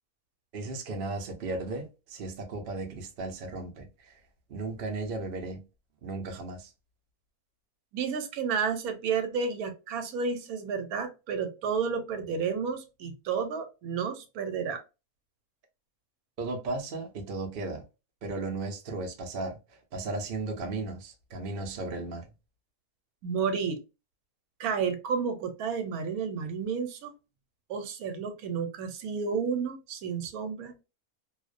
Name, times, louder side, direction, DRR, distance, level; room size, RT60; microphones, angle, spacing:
voice 1, 0.5-4.2 4.5-5.6 6.0-6.7 16.4-17.8 18.2-22.3, right 3 dB, 60° right, 0.6 m, -35 dB
voice 2, 7.9-14.8 23.2-23.8 24.6-27.1 27.7-30.8, right 6 dB, 80° right, 1.1 m, -31 dB
2.5 x 2.1 x 2.4 m
omnidirectional pair, 1.5 m